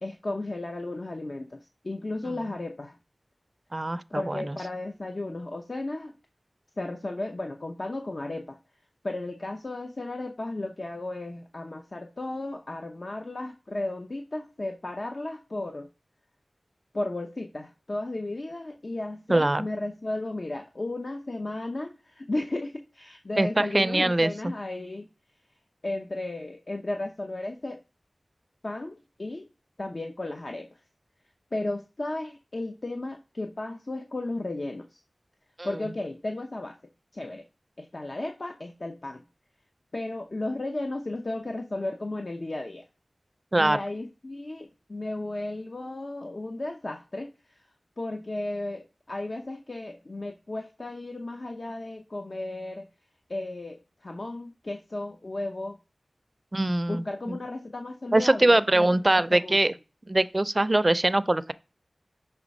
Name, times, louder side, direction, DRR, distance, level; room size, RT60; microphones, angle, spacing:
voice 1, 0.0-3.0 4.1-6.1 6.8-8.6 9.0-15.9 16.9-25.1 25.8-27.8 28.6-29.5 29.8-30.8 31.5-35.0 35.6-36.8 37.1-37.4 37.8-39.2 39.9-42.8 43.6-47.6 48.0-52.9 53.3-55.8 56.9-58.9 59.1-59.6, left 2 dB, 55° left, 0.7 m, -34 dB
voice 2, 3.7-4.6 19.3-19.7 23.4-24.3 35.6-35.7 43.5-43.8 56.5-57.4 58.1-59.7 60.1-61.5, right 2 dB, 35° right, 0.4 m, -23 dB
6.0 x 3.3 x 5.3 m
wide cardioid pair, 55°, 0 cm